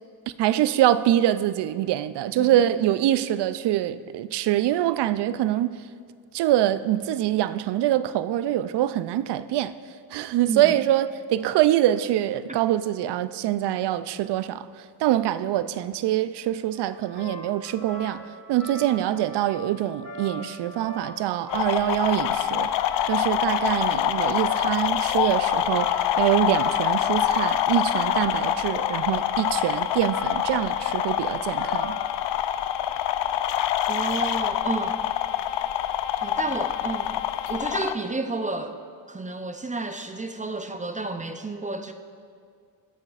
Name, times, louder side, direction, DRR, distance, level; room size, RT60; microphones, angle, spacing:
voice 1, 0.4-5.8 6.3-9.7 10.1-14.7 15.0-18.2 18.5-22.7 23.1-25.9 26.2-32.0, right 13 dB, 60° right, 0.5 m, -24 dB
sound 1, 16.7-32.1, left 1 dB, 40° left, 2.5 m, -40 dB
sound 2, 21.5-37.9, left 11 dB, 60° left, 0.5 m, -25 dB
voice 2, 33.9-35.0 36.2-37.2 37.5-38.8 39.1-41.9, right 3 dB, 15° right, 0.6 m, -31 dB
19.5 x 6.6 x 2.5 m
supercardioid pair, 65°, 48 cm